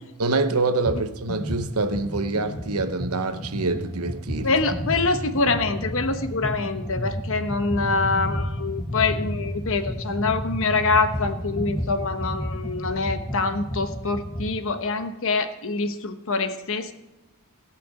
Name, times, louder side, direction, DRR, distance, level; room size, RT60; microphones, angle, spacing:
voice 1, 0.2-4.5, right 3 dB, 85° right, 1.0 m, -25 dB
sound 1, 0.9-1.0 1.3-14.6, equal, 30° left, 1.4 m, -31 dB
voice 2, 4.4-16.9, left 3 dB, 65° left, 1.1 m, -25 dB
17.5 x 6.0 x 8.3 m
head